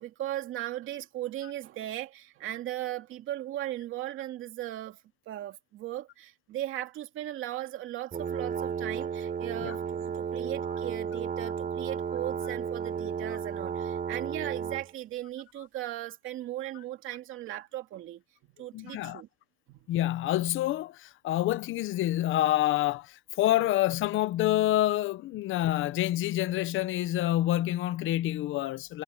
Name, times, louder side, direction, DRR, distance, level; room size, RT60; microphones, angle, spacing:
voice 1, 0.0-5.0 5.3-18.2 18.6-19.3 19.7-19.8, right 14 dB, 85° right, 2.7 m, -37 dB
sound 1, 8.1-14.9, right 7 dB, 45° right, 3.9 m, -33 dB
voice 2, 18.7-19.2 19.9-29.0, left 14 dB, 85° left, 0.8 m, -27 dB
cardioid pair, 90°, 20 cm